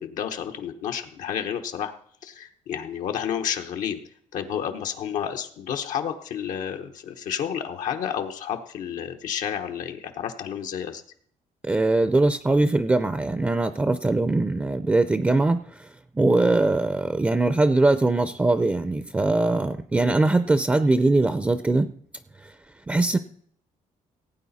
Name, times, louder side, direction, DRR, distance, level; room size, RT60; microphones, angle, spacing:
voice 1, 0.0-1.9 2.2-4.0 4.3-11.0, left 8 dB, 90° left, 4 dB, 1.0 m, -30 dB
voice 2, 11.6-21.9 22.4-22.5 22.9-23.2, right 2 dB, 10° right, 12 dB, 0.4 m, -22 dB
17.0 x 8.8 x 4.1 m, 0.62 s
cardioid pair, 140°, 13 cm